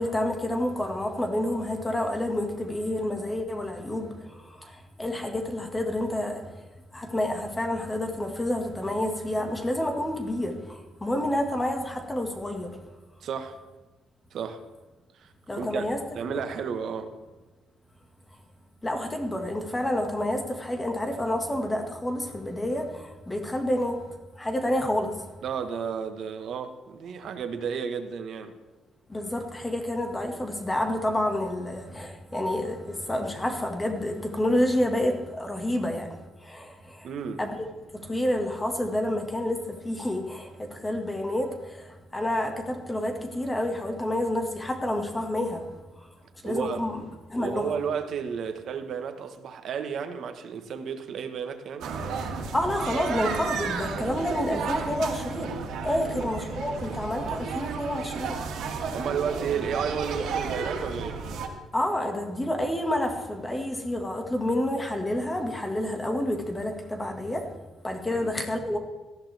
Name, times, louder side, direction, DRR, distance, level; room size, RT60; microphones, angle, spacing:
voice 1, 0.0-6.7 6.9-12.8 15.5-16.0 16.3-16.4 18.8-25.3 29.1-37.1 37.4-37.7 37.9-46.1 46.4-47.0 47.3-47.7 52.5-58.5 58.7-58.9 61.7-67.6 67.8-68.8, left 1 dB, 10° left, 1.8 m, -29 dB
voice 2, 13.2-13.6 14.3-14.6 15.1-15.9 16.1-17.1 25.4-28.5 37.0-37.4 46.4-46.8 47.4-51.9 55.9-56.3 58.9-61.2 68.1-68.3, right 7 dB, 55° right, 1.3 m, -32 dB
sound 1, 51.8-61.5, right 5 dB, 80° right, 2.3 m, -33 dB
18.0 x 14.5 x 3.5 m
cardioid pair, 145°, 0 cm